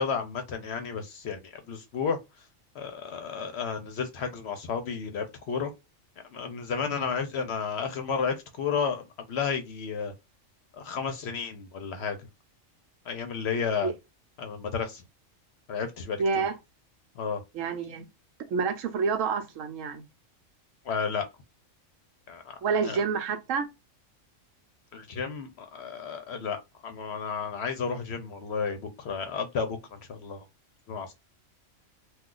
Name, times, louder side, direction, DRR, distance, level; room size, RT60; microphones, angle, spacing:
voice 1, 0.0-2.2 2.7-5.7 6.3-10.1 10.7-12.3 13.0-13.9 14.4-15.0 15.7-16.5 17.2-17.4 20.8-21.2 22.3-23.0 24.9-30.4 30.9-31.1, left 6 dB, 60° left, 0.7 m, -32 dB
voice 2, 16.2-16.5 17.5-18.1 18.5-20.0 22.6-23.7, right 5 dB, 75° right, 1.0 m, -28 dB
2.4 x 2.3 x 3.7 m
omnidirectional pair, 1.4 m